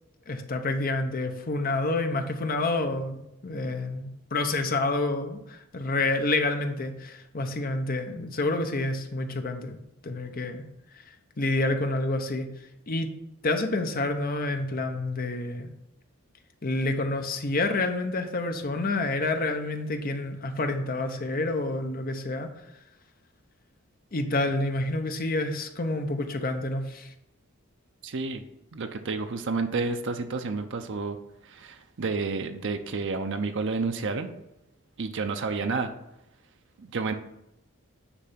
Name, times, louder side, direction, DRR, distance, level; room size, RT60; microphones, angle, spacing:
voice 1, 0.3-9.8 10.0-10.6 10.9-11.0 11.4-12.5 12.9-13.1 13.4-15.7 16.6-22.5 24.1-27.1, left 2 dB, 40° left, 6 dB, 0.8 m, -28 dB
voice 2, 28.0-28.4 28.7-31.2 31.4-34.3 35.0-35.9 36.8-37.1, right 4 dB, 55° right, 6 dB, 0.6 m, -30 dB
9.8 x 3.3 x 5.7 m, 0.85 s
head